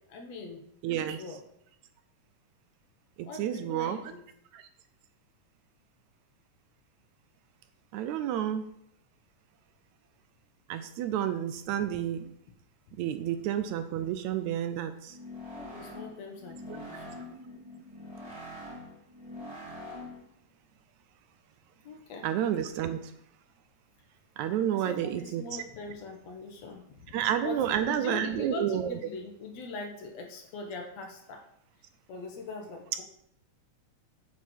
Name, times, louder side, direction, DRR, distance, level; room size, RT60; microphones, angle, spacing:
voice 1, 0.1-1.4 3.3-4.2 11.7-11.8 12.9-13.0 15.6-17.2 21.8-22.3 24.7-27.2 27.4-31.4 32.1-33.0, left 3 dB, 65° left, 2 dB, 2.3 m, -42 dB
voice 2, 0.8-1.2 3.2-4.0 4.5-4.6 7.9-8.7 10.7-12.3 13.0-15.1 22.2-23.0 24.4-25.6 27.1-28.9, right 10 dB, 80° right, 10 dB, 1.9 m, -30 dB
sound 1, 15.0-20.3, left 1 dB, 10° right, 2.7 m, -44 dB
8.3 x 7.1 x 4.5 m, 0.73 s
omnidirectional pair, 3.5 m